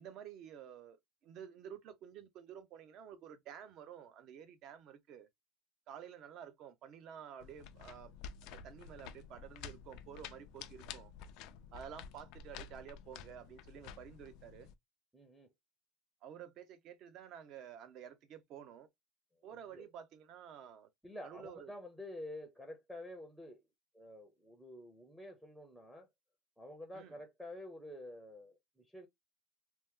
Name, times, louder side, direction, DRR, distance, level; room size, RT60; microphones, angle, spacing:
voice 1, 0.0-5.3 5.9-8.1 8.4-11.1 11.7-14.7 16.2-18.9 19.4-20.9 21.2-21.7 26.9-27.2, right 8 dB, 50° right, 0.6 m, -51 dB
sound 1, 7.4-14.7, left 7 dB, 65° left, 0.4 m, -51 dB
voice 2, 15.1-15.5 19.4-19.9 21.0-23.6 23.9-26.1 26.6-28.6 28.9-29.1, left 1 dB, ahead, 0.6 m, -49 dB
2.9 x 2.0 x 3.5 m
cardioid pair, 155°, 0 cm